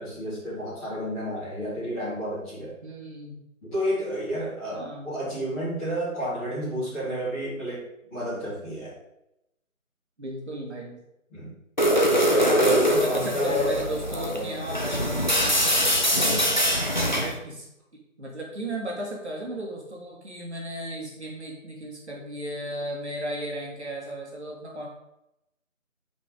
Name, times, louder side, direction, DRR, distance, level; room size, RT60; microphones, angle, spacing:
voice 1, 0.0-2.7 3.6-9.0 11.3-11.5 11.8-14.6, equal, ahead, -20 dB, 1.9 m, -30 dB
voice 2, 2.8-3.3 4.7-5.1 10.2-11.0 12.6-15.5 17.1-17.7 17.9-24.9, right 1 dB, 50° right, -2 dB, 2.9 m, -35 dB
sound 1, 11.8-17.4, equal, 35° left, 0.7 m, -23 dB
6.1 x 5.9 x 5.4 m, 0.85 s
figure-of-eight pair, 165°, 42 cm